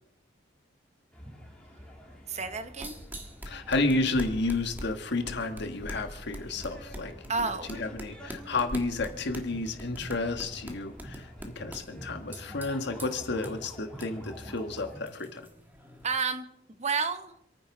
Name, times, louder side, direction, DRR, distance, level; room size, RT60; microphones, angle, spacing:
sound 1, 1.1-15.0, equal, 5° left, 2.9 m, -48 dB
voice 1, 2.3-3.0 7.3-7.7 16.0-16.5 16.8-17.3, right 5 dB, 35° right, 10 dB, 0.9 m, -30 dB
sound 2, 2.4-16.2, equal, 10° right, 1.6 m, -45 dB
voice 2, 3.4-15.4, left 3 dB, 60° left, 6 dB, 1.6 m, -31 dB
27.5 x 9.6 x 3.9 m, 0.80 s
head